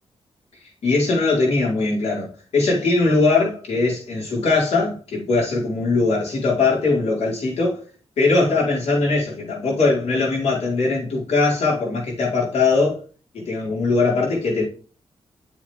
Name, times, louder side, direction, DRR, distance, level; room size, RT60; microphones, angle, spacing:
voice 1, 0.8-7.8 8.2-13.0 13.3-14.6, left 3 dB, 90° left, 5.2 m, -20 dB
7.5 x 7.4 x 3.8 m
wide cardioid pair, 145°, 11 cm